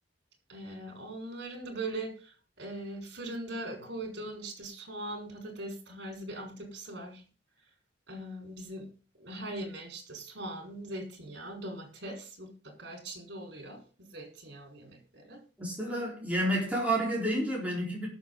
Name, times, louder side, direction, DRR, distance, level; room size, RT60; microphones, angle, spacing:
voice 1, 0.5-7.2 8.1-8.9 9.2-15.4, right 1 dB, 60° right, 4.8 m, -41 dB
voice 2, 15.6-18.1, right 1 dB, 5° right, 4.1 m, -30 dB
19.5 x 7.1 x 3.9 m
head